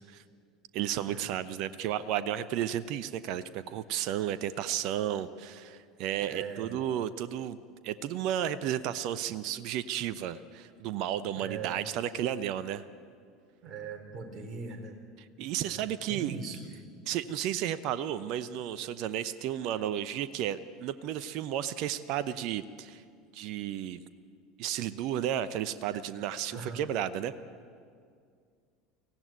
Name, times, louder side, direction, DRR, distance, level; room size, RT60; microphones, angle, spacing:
voice 1, 0.7-7.6 7.8-12.8 15.4-16.3 17.1-23.0 23.3-24.0 24.6-27.3, right 11 dB, 55° right, 15 dB, 0.8 m, -33 dB
voice 2, 6.2-6.8 11.3-11.8 13.6-15.0 15.7-16.7 25.9-26.0 26.5-26.8, right 5 dB, 35° right, 4 dB, 4.1 m, -41 dB
23.5 x 16.0 x 9.5 m, 2.2 s
figure-of-eight pair, 70°, 0 cm